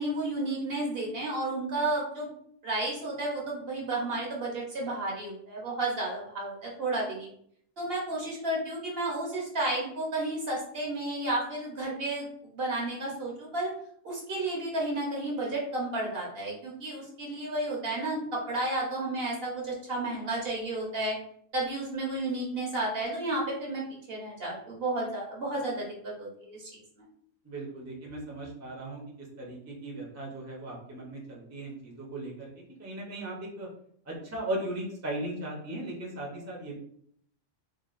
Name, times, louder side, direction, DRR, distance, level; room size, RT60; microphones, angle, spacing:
voice 1, 0.0-2.3 2.6-7.3 7.8-13.7 14.0-21.2 21.5-26.8, right 2 dB, 55° right, -3 dB, 1.0 m, -32 dB
voice 2, 27.4-29.0 29.4-32.5 32.8-33.7 34.1-36.8, right 1 dB, 15° right, -3 dB, 0.6 m, -37 dB
3.8 x 2.3 x 2.5 m, 0.66 s
omnidirectional pair, 1.3 m